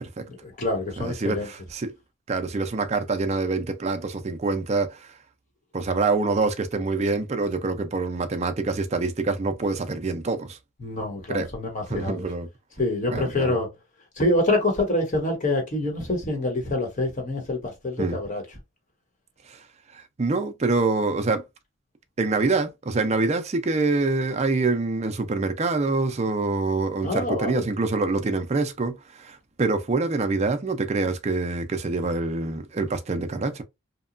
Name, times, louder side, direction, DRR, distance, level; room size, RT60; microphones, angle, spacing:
voice 1, 0.3-1.5 10.8-12.3 12.8-13.7 14.2-18.4 27.0-27.7, left 2 dB, 35° left, 1.1 m, -26 dB
voice 2, 1.0-1.9 2.3-5.1 5.7-10.6 11.3-11.5 11.9-12.5 13.1-13.6 18.0-18.2 19.5-19.6 19.9-21.4 22.2-33.6, right 3 dB, 30° right, 0.4 m, -26 dB
2.9 x 2.2 x 2.5 m
head